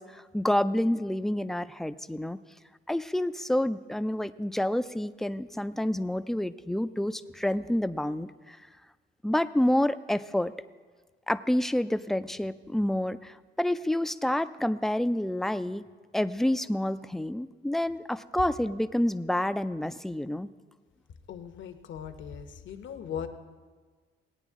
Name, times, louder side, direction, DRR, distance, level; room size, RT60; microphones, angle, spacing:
voice 1, 0.0-2.4 2.9-8.6 9.2-10.5 11.3-15.8 16.1-20.5, left 1 dB, ahead, 12 dB, 0.4 m, -28 dB
voice 2, 21.3-23.3, left 8 dB, 70° left, 7 dB, 1.0 m, -39 dB
18.0 x 9.1 x 3.6 m, 1.5 s
cardioid pair, 90°, 20 cm